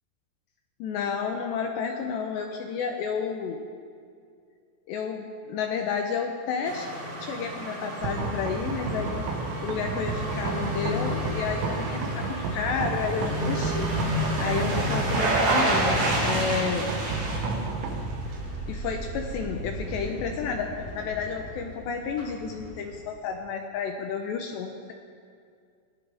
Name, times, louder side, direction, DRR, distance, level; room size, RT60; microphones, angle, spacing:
voice 1, 0.8-3.6 4.9-6.9 7.2-9.3 9.6-13.9 14.4-16.9 18.7-24.9, left 6 dB, 75° left, 3 dB, 2.6 m, -31 dB
sound 1, 6.7-18.5 18.9-19.0, right 1 dB, 55° right, 4.6 m, -30 dB
sound 2, 8.0-21.9, right 3 dB, 80° right, 3.8 m, -32 dB
sound 3, 17.7-23.2, right 1 dB, 25° left, 2.6 m, -39 dB
23.5 x 17.5 x 3.5 m, 2.2 s
omnidirectional pair, 5.8 m